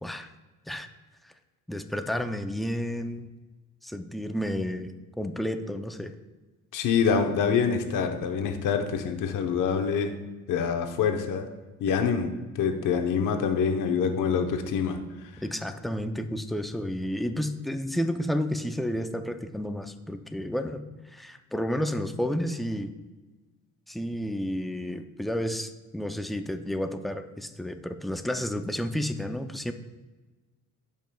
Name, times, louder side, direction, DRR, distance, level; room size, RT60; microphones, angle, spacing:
voice 1, 1.7-3.3 3.8-6.1 15.4-20.8 21.1-22.9 23.9-29.7, equal, ahead, 7 dB, 0.4 m, -31 dB
voice 2, 6.7-10.2 10.5-11.5 11.8-15.0, left 6 dB, 70° left, 5 dB, 0.9 m, -26 dB
14.5 x 5.2 x 2.3 m, 1.2 s
cardioid pair, 115°, 32 cm